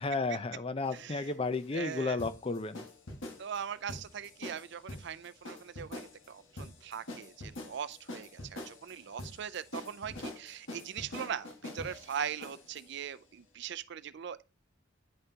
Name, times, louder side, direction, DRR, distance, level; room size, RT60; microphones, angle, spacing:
voice 1, 0.0-2.8, left 3 dB, 30° left, 0.5 m, -33 dB
sound 1, 0.8-12.9, left 1 dB, 75° left, 1.5 m, -45 dB
voice 2, 0.9-1.3 1.7-2.2 3.4-14.4, right 8 dB, 60° right, 0.4 m, -40 dB
9.4 x 5.5 x 2.8 m
head